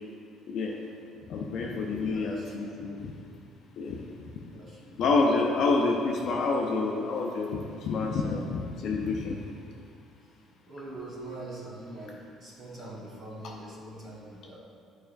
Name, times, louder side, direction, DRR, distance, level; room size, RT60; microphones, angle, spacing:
voice 1, 0.5-0.8 1.3-3.1 3.8-4.0 5.0-9.4 13.4-13.5, left 3 dB, 55° left, -1 dB, 0.5 m, -28 dB
voice 2, 2.0-2.7 4.5-5.0 10.7-14.6, right 2 dB, 40° right, -7 dB, 1.2 m, -43 dB
9.1 x 4.9 x 2.6 m, 2.4 s
cardioid pair, 165°, 0 cm